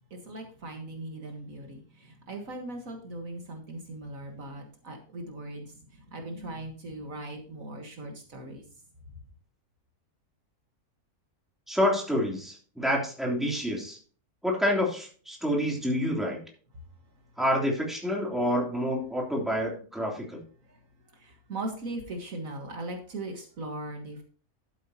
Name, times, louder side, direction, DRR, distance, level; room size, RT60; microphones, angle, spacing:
voice 1, 0.1-8.6 20.7-20.8 21.1-24.2, right 2 dB, 65° right, 3 dB, 2.0 m, -39 dB
voice 2, 11.7-14.0 14.4-16.4 17.4-20.4, equal, ahead, -1 dB, 3.2 m, -28 dB
12.0 x 8.4 x 2.9 m, 0.41 s
omnidirectional pair, 1.6 m